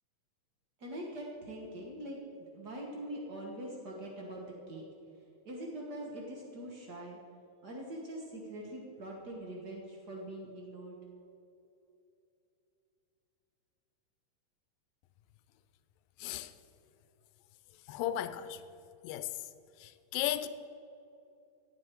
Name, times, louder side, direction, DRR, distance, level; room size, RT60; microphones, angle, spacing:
voice 1, 0.8-2.2 2.5-4.8 5.4-7.2 7.6-11.0, right 1 dB, 85° right, 0.9 m, -43 dB
voice 2, 16.2-16.5 17.9-18.6 19.0-19.5 19.8-20.5, left 12 dB, 80° left, 2.2 m, -35 dB
16.5 x 8.6 x 4.6 m
omnidirectional pair, 4.1 m